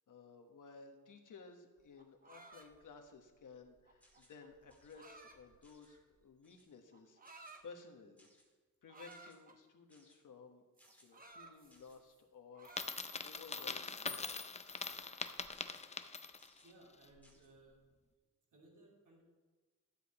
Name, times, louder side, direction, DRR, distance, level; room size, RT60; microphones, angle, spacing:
voice 1, 0.1-7.2 7.6-8.3 8.8-10.6 11.0-14.4, left 4 dB, 75° left, 5 dB, 1.3 m, -56 dB
sound 1, 1.8-6.2 6.9-7.6 8.9-9.6 10.8-12.2 12.5-13.4 13.8-15.5, right 3 dB, 30° right, 0.9 m, -59 dB
sound 2, 4.0-4.4 4.7-5.0 5.6-6.0 6.4-6.7 7.2-7.6 8.2-8.5 9.1-9.4 9.9-10.2 10.8-11.1 11.7-12.0 12.8-13.1 13.7-14.0 14.7-14.9 15.5-15.8 16.4-16.7 17.2-17.5, left 1 dB, 5° left, 1.8 m, -68 dB
Coin (dropping), 12.7-16.6, left 4 dB, 20° left, 0.4 m, -43 dB
voice 2, 16.6-17.8 18.5-19.2, right 2 dB, 75° right, -3 dB, 2.8 m, -62 dB
12.5 x 8.7 x 4.2 m, 1.3 s
wide cardioid pair, 155°, 32 cm